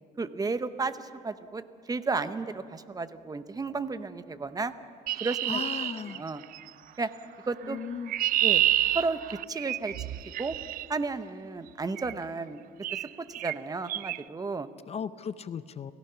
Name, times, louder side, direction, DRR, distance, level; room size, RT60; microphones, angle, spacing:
voice 1, 0.2-4.7 5.2-5.6 6.1-6.4 7.0-7.1 7.5-7.8 8.4-8.6 8.9-9.2 9.5-10.1 10.4-10.5 10.9-12.6 13.0-14.7, right 4 dB, 20° right, 11 dB, 0.9 m, -33 dB
Chirp tweet, 5.1-6.7 7.7-10.9 12.0-12.2 12.8-13.1 13.3-13.6 13.9-14.2, right 13 dB, 60° right, 0.4 m, -29 dB
voice 2, 5.5-6.2 7.6-8.1 14.9-15.9, left 7 dB, 40° left, 14 dB, 0.6 m, -36 dB
29.5 x 16.5 x 5.7 m, 2.3 s
cardioid pair, 110°, 17 cm